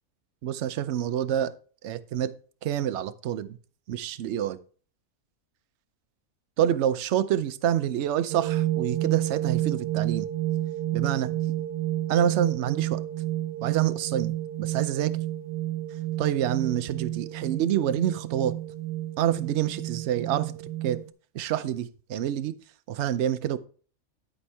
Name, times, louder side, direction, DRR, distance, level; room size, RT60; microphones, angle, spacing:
voice 1, 0.4-1.5 1.8-2.3 2.6-3.6 3.9-4.6 6.6-10.3 10.9-11.4 12.1-13.0 13.6-15.2 16.2-18.6 19.2-20.6 20.8-21.0 21.3-22.5 22.9-23.6, right 10 dB, 65° right, 0.8 m, -27 dB
sound 1, 8.3-21.1, right 14 dB, 85° right, 1.2 m, -30 dB
11.0 x 5.4 x 3.3 m
omnidirectional pair, 1.5 m